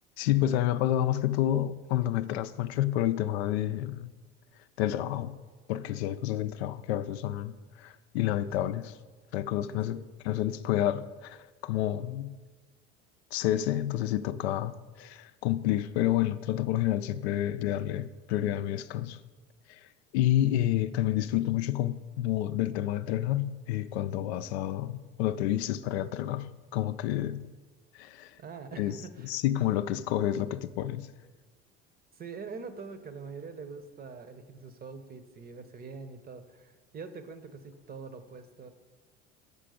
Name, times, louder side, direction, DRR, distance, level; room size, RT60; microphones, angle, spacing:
voice 1, 0.2-4.1 4.8-5.4 5.7-8.9 9.3-12.4 13.3-19.2 19.7-19.8 20.1-27.5 28.0-28.3 28.8-28.9 29.2-31.1, left 13 dB, 70° left, 0.5 m, -29 dB
voice 2, 9.7-10.1 28.4-29.3 32.1-38.7, right 5 dB, 25° right, 0.8 m, -44 dB
6.8 x 5.9 x 4.9 m
hypercardioid pair, 75°, 34 cm